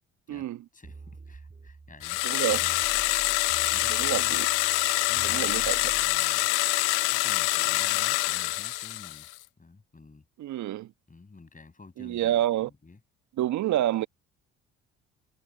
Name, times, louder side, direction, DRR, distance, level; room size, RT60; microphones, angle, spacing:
voice 1, 0.3-2.2 2.6-2.8 3.7-4.4 4.7-6.5 7.1-9.3 9.6-10.3 11.1-13.0, left 3 dB, 25° left, 6.3 m, -51 dB
sound 1, 0.8-6.2, right 4 dB, 25° right, 4.0 m, -47 dB
sound 2, 2.0-9.3, left 21 dB, 80° left, 0.7 m, -26 dB
voice 2, 2.2-2.6 3.9-4.4 5.2-5.7 10.4-10.9 12.0-12.7 13.4-14.1, right 13 dB, 60° right, 1.5 m, -28 dB
hypercardioid pair, 55°, 33 cm